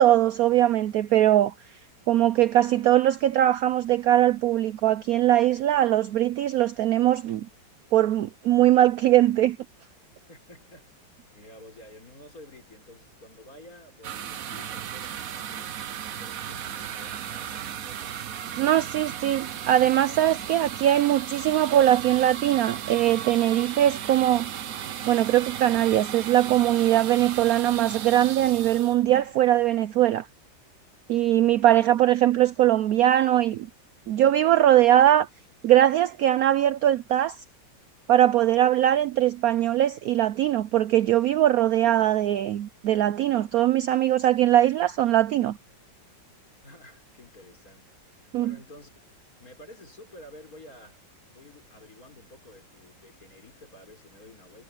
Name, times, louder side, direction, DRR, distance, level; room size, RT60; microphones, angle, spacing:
voice 1, 0.0-1.5 2.1-7.5 7.9-9.6 18.6-24.5 25.1-30.3 31.1-33.7 34.1-35.3 35.6-37.4 38.1-45.6 48.3-48.5, right 12 dB, 75° right, 0.8 m, -21 dB
voice 2, 10.3-11.1 11.3-18.9 46.6-48.9 49.4-54.6, left 1 dB, 45° left, 5.9 m, -51 dB
sound 1, 14.0-29.7, right 9 dB, 55° right, 1.1 m, -36 dB
omnidirectional pair, 2.1 m